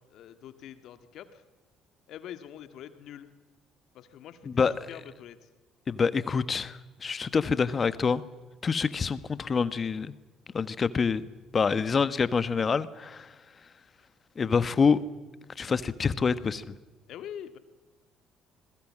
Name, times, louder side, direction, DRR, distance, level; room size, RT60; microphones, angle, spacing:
voice 1, 0.0-1.4 2.1-3.3 3.9-5.5 17.1-17.6, left 10 dB, 60° left, 10 dB, 1.9 m, -45 dB
voice 2, 4.5-4.9 5.9-8.2 8.6-10.1 10.5-11.3 11.5-13.3 14.4-15.0 15.6-16.7, left 5 dB, 35° left, 15 dB, 1.3 m, -26 dB
26.5 x 21.5 x 7.6 m, 1.2 s
figure-of-eight pair, 50°, 0 cm